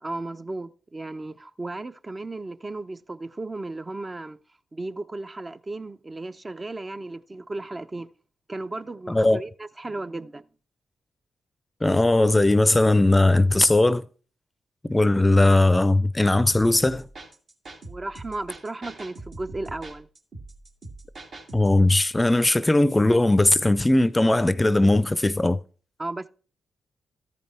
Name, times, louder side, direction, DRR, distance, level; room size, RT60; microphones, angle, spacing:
voice 1, 0.0-4.4 4.7-8.1 8.5-10.4 17.9-20.1 26.0-26.3, right 2 dB, 35° right, 0.6 m, -35 dB
voice 2, 9.1-9.4 11.8-14.0 14.8-17.1 21.5-25.6, left 2 dB, 20° left, 0.5 m, -19 dB
sound 1, 16.5-21.8, right 2 dB, 65° right, 1.9 m, -43 dB
13.5 x 5.3 x 4.4 m
hypercardioid pair, 40°, 0 cm